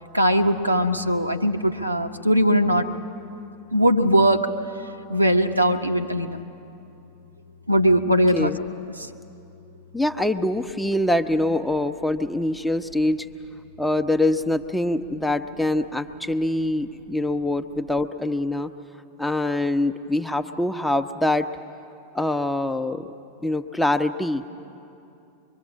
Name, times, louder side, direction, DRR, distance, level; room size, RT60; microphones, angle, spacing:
voice 1, 0.1-2.9 3.7-4.5 5.1-6.4 7.7-8.5 9.0-9.1, equal, 85° right, 5 dB, 1.2 m, -20 dB
voice 2, 9.9-13.3 13.8-18.7 19.2-21.5 22.1-23.1 23.4-24.4, left 1 dB, 5° left, 7 dB, 0.9 m, -24 dB
24.5 x 23.0 x 8.6 m, 2.7 s
figure-of-eight pair, 90°, 0 cm